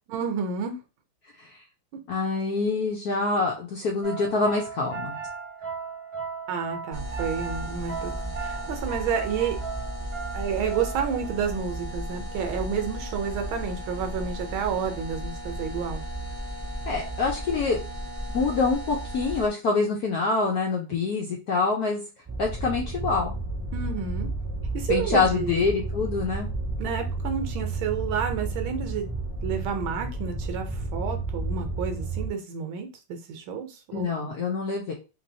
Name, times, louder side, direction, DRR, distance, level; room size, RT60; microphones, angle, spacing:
voice 1, 0.1-0.8 6.5-8.1 8.4-9.6 10.3-16.0 23.7-24.3 24.7-25.6 26.8-29.1 29.4-34.3, right 7 dB, 75° right, 1.4 m, -30 dB
voice 2, 2.1-5.2 16.9-17.8 18.3-22.0 22.4-23.3 24.9-26.5 33.9-34.9, left 4 dB, 75° left, 0.8 m, -25 dB
sound 1, 4.0-11.3, right 5 dB, 40° right, 0.9 m, -37 dB
sound 2, 6.9-19.5, right 1 dB, 5° left, 0.9 m, -35 dB
sound 3, 22.3-32.3, right 2 dB, 20° right, 0.4 m, -32 dB
3.3 x 3.2 x 2.6 m
omnidirectional pair, 2.4 m